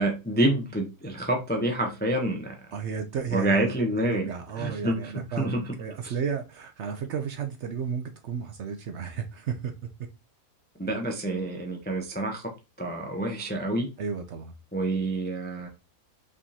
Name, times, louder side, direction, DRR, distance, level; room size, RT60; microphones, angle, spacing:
voice 1, 0.0-2.5 3.3-4.3 4.6-5.7 6.0-6.1 10.8-12.5 12.8-13.9 14.7-15.7, right 1 dB, 15° left, 0.4 m, -27 dB
voice 2, 2.7-3.7 4.1-9.7 14.0-14.5, right 6 dB, 65° right, 0.7 m, -33 dB
5.2 x 3.5 x 2.7 m
omnidirectional pair, 1.6 m